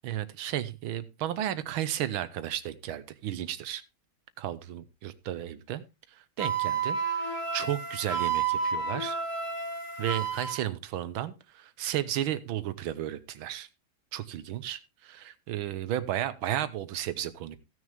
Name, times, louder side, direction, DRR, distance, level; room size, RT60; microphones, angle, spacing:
voice 1, 0.0-3.8 4.4-5.8 6.4-9.2 10.0-13.7 14.1-17.6, right 12 dB, 75° right, 14 dB, 1.7 m, -33 dB
Wind instrument woodwind instrument, 6.4-10.6, right 5 dB, 45° left, 2.4 m, -31 dB
16.0 x 6.4 x 3.4 m, 0.26 s
omnidirectional pair, 2.3 m